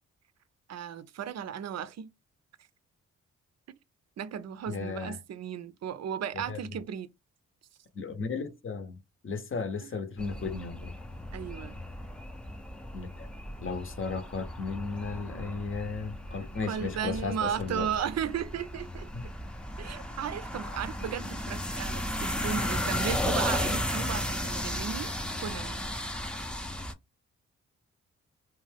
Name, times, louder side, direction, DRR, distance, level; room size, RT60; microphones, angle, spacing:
voice 1, 0.7-2.1 4.2-7.1 11.3-11.8 15.2-15.5 16.6-19.1 19.8-25.1 25.4-25.9, right 8 dB, 50° right, 0.5 m, -35 dB
voice 2, 4.7-5.2 6.5-6.6 7.9-9.0 9.2-10.9 12.9-13.3 13.6-17.9 19.1-19.3 20.6-20.8, left 4 dB, 40° left, 0.8 m, -35 dB
sound 1, 10.2-26.9, left 1 dB, 5° left, 0.6 m, -35 dB
2.5 x 2.3 x 3.3 m
supercardioid pair, 45°, 33 cm